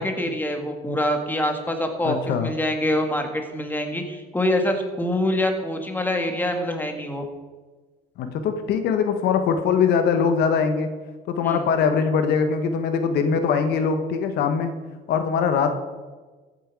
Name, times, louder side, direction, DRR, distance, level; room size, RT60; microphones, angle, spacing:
voice 1, 0.0-7.2 11.4-11.6, left 1 dB, 10° left, 4 dB, 1.9 m, -25 dB
voice 2, 2.0-2.5 8.2-10.9 11.3-14.7 15.1-15.7, left 6 dB, 75° left, 8 dB, 1.3 m, -22 dB
14.0 x 9.0 x 4.8 m, 1.3 s
cardioid pair, 110°, 17 cm